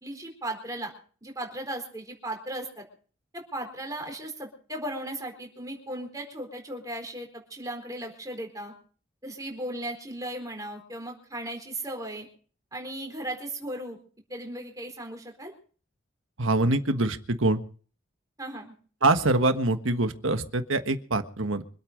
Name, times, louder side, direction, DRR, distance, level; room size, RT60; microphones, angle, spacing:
voice 1, 0.0-0.9 1.2-2.8 3.3-8.7 9.2-12.3 12.7-14.0 14.3-15.5 18.4-18.7, right 1 dB, 15° right, 2 dB, 4.2 m, -36 dB
voice 2, 16.4-17.6 19.0-21.6, right 2 dB, 80° right, 8 dB, 1.4 m, -24 dB
25.5 x 8.7 x 5.3 m, 0.42 s
head